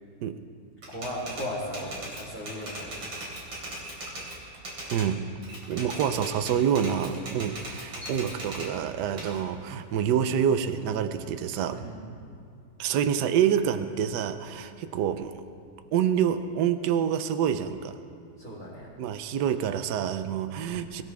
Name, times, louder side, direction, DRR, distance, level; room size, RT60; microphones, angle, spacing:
Typewriter, 0.8-5.1 5.4-8.7 9.2-10.8, right 1 dB, 90° right, 3.8 m, -39 dB
voice 1, 0.9-3.2 11.7-12.2 18.4-18.9 20.5-20.9, equal, 5° left, -10 dB, 3.4 m, -37 dB
voice 2, 4.9-5.3 5.7-11.8 12.8-15.4 15.9-18.0 19.0-21.0, right 8 dB, 70° right, 10 dB, 1.3 m, -27 dB
22.5 x 15.0 x 3.5 m, 2.4 s
omnidirectional pair, 2.0 m